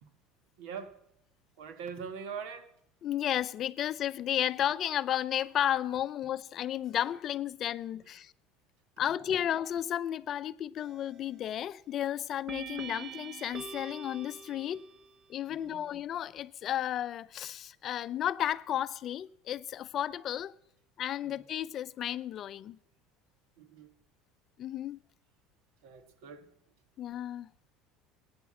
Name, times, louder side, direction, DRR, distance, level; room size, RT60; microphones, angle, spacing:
voice 1, 0.6-1.0 1.6-2.7 7.9-8.0 9.2-9.4 15.5-15.9 21.2-21.4 23.6-23.9 25.8-26.5, right 6 dB, 75° right, 1.6 m, -43 dB
voice 2, 3.0-8.3 9.0-14.8 15.3-20.5 21.0-22.8 24.6-25.0 27.0-27.5, left 11 dB, 45° left, 0.4 m, -33 dB
sound 1, 10.8-11.3 12.5-15.2, right 6 dB, 40° right, 1.0 m, -45 dB
14.5 x 9.5 x 7.6 m
supercardioid pair, 120°, 0 cm